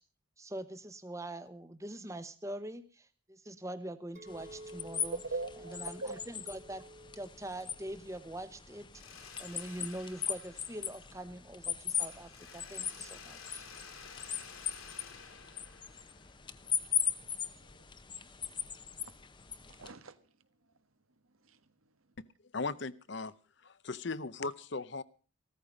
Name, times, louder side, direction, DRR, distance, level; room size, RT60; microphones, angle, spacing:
voice 1, 0.4-5.2 5.7-6.8 7.2-13.7, right 1 dB, 15° right, 12 dB, 1.0 m, -44 dB
Chink clink, 4.1-8.5 8.8-9.3, right 1 dB, 40° right, 2.2 m, -53 dB
sound 1, 4.3-19.9, left 8 dB, 20° left, 0.8 m, -39 dB
voice 2, 5.1-6.2 17.6-17.9 19.0-19.1 19.6-20.2 21.4-21.6, right 3 dB, 85° right, 11 dB, 1.5 m, -41 dB
Mechanisms, 8.9-11.5 11.9-16.7, left 6 dB, 85° left, 3.7 m, -52 dB
voice 3, 22.5-23.3 23.6-25.0, left 3 dB, 55° left, 16 dB, 0.7 m, -37 dB
15.5 x 14.0 x 5.2 m, 0.37 s
head